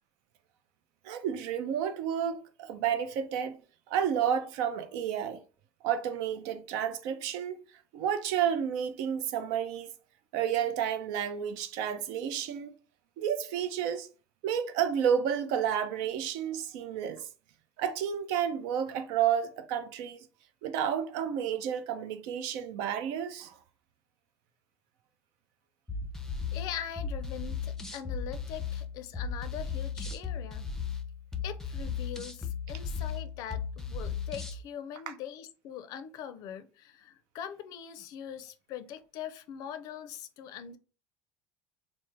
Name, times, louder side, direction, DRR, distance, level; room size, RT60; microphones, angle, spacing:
voice 1, 1.0-3.6 3.9-5.4 5.8-7.6 7.9-9.9 10.3-12.7 13.2-14.1 14.4-17.3 17.8-20.2 20.6-23.5 35.1-35.2, right 8 dB, 75° right, 0.5 m, -31 dB
sound 1, 25.9-34.6, left 6 dB, 10° left, 0.5 m, -36 dB
voice 2, 26.5-30.7 31.4-40.8, left 9 dB, 65° left, 0.4 m, -42 dB
3.2 x 2.0 x 3.2 m
supercardioid pair, 90°, 7 cm